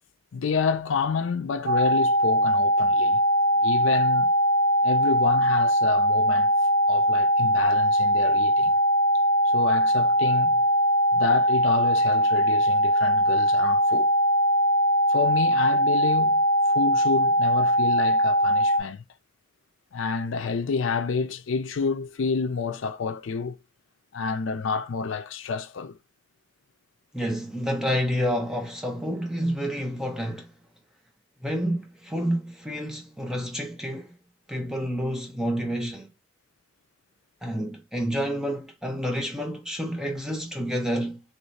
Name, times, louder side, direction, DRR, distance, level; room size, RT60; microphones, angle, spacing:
voice 1, 0.3-3.2 3.6-4.3 4.8-6.5 6.9-8.7 9.5-10.6 11.1-14.1 15.1-19.0 19.9-23.6 24.1-26.0, left 5 dB, 70° left, 0.4 m, -29 dB
sound 1, 1.7-18.8, equal, 40° right, 1.1 m, -21 dB
voice 2, 27.1-30.5 31.4-34.1 34.5-36.1 37.4-41.2, equal, 5° right, 0.5 m, -29 dB
3.1 x 2.6 x 3.2 m
head